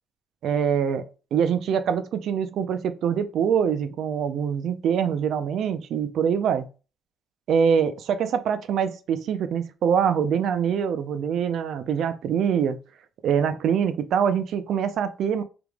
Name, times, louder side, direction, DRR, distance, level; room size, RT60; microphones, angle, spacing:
voice 1, 0.4-1.0 1.3-6.7 7.5-12.8 13.2-15.4, right 7 dB, 75° right, 0.5 m, -24 dB
3.5 x 2.9 x 3.5 m
cardioid pair, 90°, 0 cm